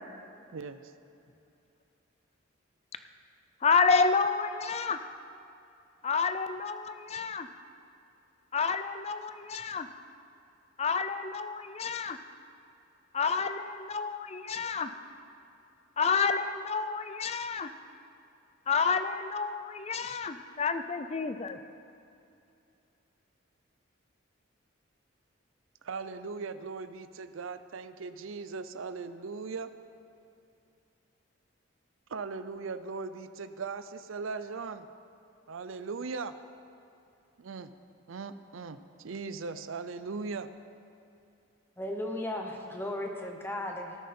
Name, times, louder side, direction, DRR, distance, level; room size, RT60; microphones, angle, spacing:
voice 1, 0.5-0.9 25.8-29.7 32.1-34.9 35.5-36.4 37.4-37.7 38.1-40.5, right 4 dB, 80° right, 12 dB, 0.5 m, -39 dB
voice 2, 3.6-5.0 6.0-7.5 8.5-9.9 10.8-12.2 13.1-14.9 16.0-17.7 18.7-21.6, left 5 dB, 30° left, 10 dB, 0.5 m, -29 dB
voice 3, 41.8-44.0, left 1 dB, 10° left, 2 dB, 0.9 m, -35 dB
18.0 x 9.1 x 4.3 m, 2.6 s
head